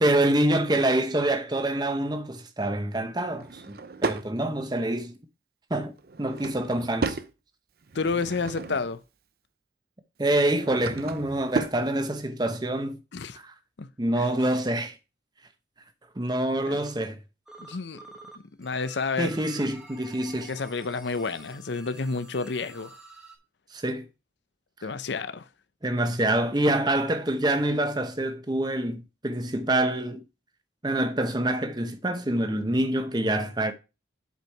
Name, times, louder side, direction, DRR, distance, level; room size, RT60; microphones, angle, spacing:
voice 1, 0.0-5.2 5.7-7.2 10.2-13.0 13.3-13.5 14.0-15.0 16.2-17.2 19.2-20.5 23.7-24.1 25.8-30.2 30.8-33.7, right 1 dB, 25° right, 0.8 m, -26 dB
Drawer open or close / Wood, 3.3-4.3 6.0-7.3 7.8-9.0 10.3-11.8, right 3 dB, 55° right, 0.6 m, -34 dB
voice 2, 7.9-9.0 13.1-13.4 13.8-13.9 14.2-14.3 16.7-16.8 17.6-18.0 18.6-19.3 20.5-22.9 24.8-25.4, left 4 dB, 75° left, 0.7 m, -30 dB
sound 1, 17.5-18.3 18.6-23.4, right 1 dB, 5° right, 1.2 m, -49 dB
8.1 x 4.7 x 4.6 m
head